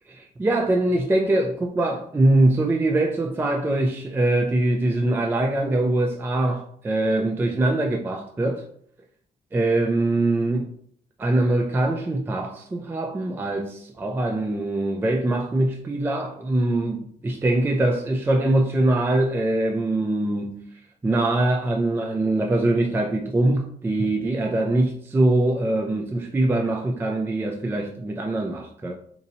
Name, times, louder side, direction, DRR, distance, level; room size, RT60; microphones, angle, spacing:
voice 1, 0.1-8.7 9.5-10.7 11.2-20.7 21.0-28.9, right 2 dB, 15° right, 0.3 m, -23 dB
4.1 x 2.6 x 2.7 m
cardioid pair, 130°, 17 cm